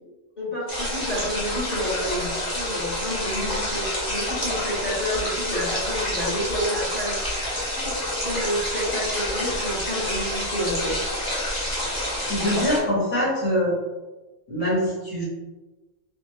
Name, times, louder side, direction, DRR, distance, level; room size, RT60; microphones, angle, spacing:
voice 1, 0.4-7.2 7.7-8.0 8.2-11.0, equal, 35° left, -10 dB, 1.5 m, -29 dB
sound 1, 0.7-12.8, left 1 dB, 20° left, 1.1 m, -28 dB
voice 2, 12.2-13.8 14.5-15.2, equal, 85° left, -6 dB, 1.9 m, -24 dB
4.3 x 2.5 x 3.1 m, 1.2 s
omnidirectional pair, 1.3 m